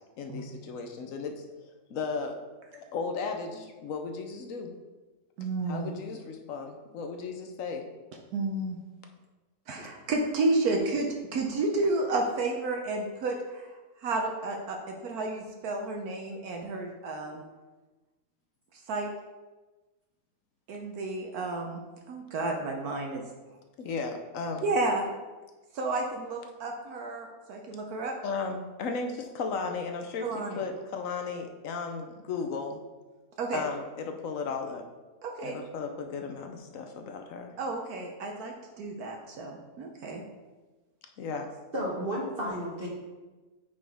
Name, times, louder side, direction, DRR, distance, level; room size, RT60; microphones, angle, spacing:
voice 1, 0.2-1.4 1.9-2.4 2.7-4.7 5.7-7.9 23.8-24.7 28.2-32.8 33.5-34.9 35.4-37.5 41.2-41.5, left 4 dB, 65° left, 4 dB, 0.9 m, -35 dB
voice 2, 5.4-5.9 8.3-8.8 9.7-13.7 14.0-17.4 18.9-19.1 20.7-21.8 22.1-23.3 24.6-25.1 25.7-28.1 30.2-30.6 33.4-33.7 35.2-35.6 37.6-40.2, right 2 dB, 70° right, 2 dB, 1.2 m, -31 dB
voice 3, 41.7-42.9, equal, 40° right, -3 dB, 1.1 m, -32 dB
8.4 x 4.0 x 3.4 m, 1.2 s
omnidirectional pair, 1.7 m